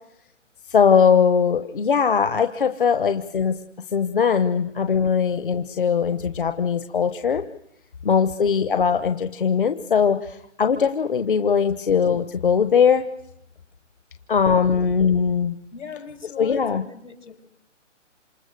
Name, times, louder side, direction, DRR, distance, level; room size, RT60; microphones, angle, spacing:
voice 1, 0.7-3.6 3.9-7.4 8.0-13.0 14.3-15.6 16.4-16.8, left 6 dB, 45° left, 9 dB, 1.1 m, -20 dB
voice 2, 15.7-17.4, left 6 dB, 70° left, 7 dB, 5.3 m, -39 dB
28.0 x 27.5 x 6.6 m, 0.82 s
hypercardioid pair, 175°, 38 cm